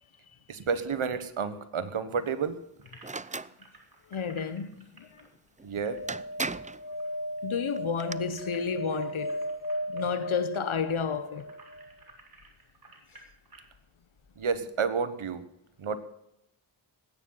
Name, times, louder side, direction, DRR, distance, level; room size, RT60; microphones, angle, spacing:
voice 1, 0.5-2.6 5.6-6.0 14.4-15.4 15.8-16.0, right 5 dB, 90° right, 1.4 m, -30 dB
sound 1, 2.8-6.7 7.0-7.1 7.4-13.7, right 2 dB, 45° right, 4.0 m, -55 dB
sound 2, 3.0-3.5 5.6-5.7 6.1-6.8 7.8-8.2, right 3 dB, 15° right, 0.5 m, -35 dB
voice 2, 4.1-5.3 7.4-9.4 9.9-11.5, left 6 dB, 80° left, 1.2 m, -31 dB
sound 3, 5.7-11.9 14.2-14.3 14.4-14.5, equal, 60° left, 3.2 m, -36 dB
20.0 x 9.5 x 5.7 m
cardioid pair, 45°, 48 cm